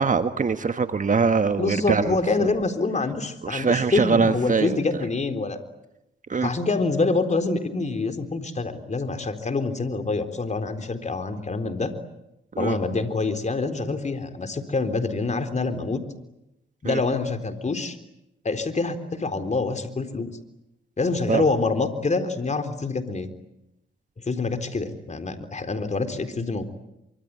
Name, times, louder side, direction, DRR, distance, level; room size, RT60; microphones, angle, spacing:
voice 1, 0.0-2.2 3.4-4.8 6.3-6.5 12.5-12.7 16.8-17.0 21.3-21.4, right 5 dB, 40° right, 9 dB, 1.4 m, -22 dB
voice 2, 1.6-5.6 6.4-11.9 12.6-16.0 16.8-18.0 18.4-20.3 21.0-23.3 24.3-26.6, left 3 dB, 35° left, 8 dB, 3.9 m, -26 dB
24.5 x 24.5 x 9.6 m, 0.85 s
cardioid pair, 65°, 20 cm